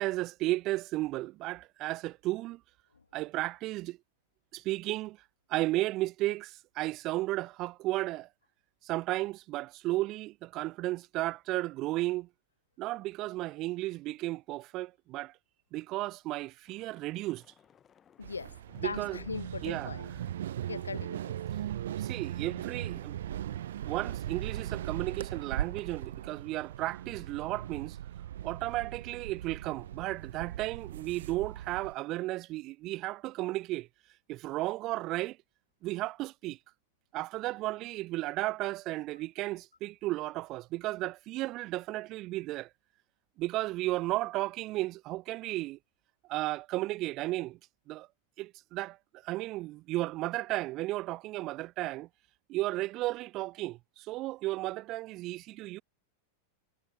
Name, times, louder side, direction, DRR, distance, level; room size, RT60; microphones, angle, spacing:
voice 1, 0.0-2.6 3.1-4.0 4.5-5.2 5.5-8.3 8.8-12.3 12.8-15.3 15.7-17.4 18.8-19.2 19.6-19.9 22.0-23.2 23.8-28.0 28.4-33.9 34.3-35.4 35.8-36.6 37.1-42.7 43.4-45.8 46.3-47.6 47.9-48.1 48.4-49.0 49.2-52.1 52.5-55.8, right 18 dB, 40° right, 0.6 m, -34 dB
Thunder / Rain, 16.7-25.2 25.5-25.7 26.1-26.3, left 8 dB, 25° left, 5.2 m, -61 dB
voice 2, 18.2-20.1 20.7-21.4, left 5 dB, 75° left, 0.9 m, -40 dB
sound 1, 18.2-31.9, right 11 dB, 60° right, 2.2 m, -39 dB
figure-of-eight pair, 90°, 0 cm